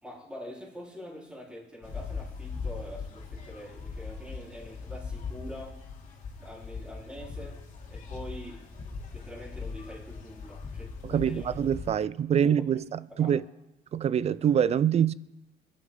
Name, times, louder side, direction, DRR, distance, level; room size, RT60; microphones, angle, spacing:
voice 1, 0.0-5.8 6.4-7.6 7.9-8.6 9.1-11.5 12.0-12.1 12.6-12.7 13.2-13.4, left 1 dB, 5° right, 4.3 m, -44 dB
sound 1, 1.8-11.9, left 4 dB, 45° left, 3.0 m, -40 dB
voice 2, 11.0-13.4 13.9-15.1, right 9 dB, 40° right, 0.4 m, -25 dB
22.5 x 11.5 x 3.9 m
cardioid pair, 110°, 17 cm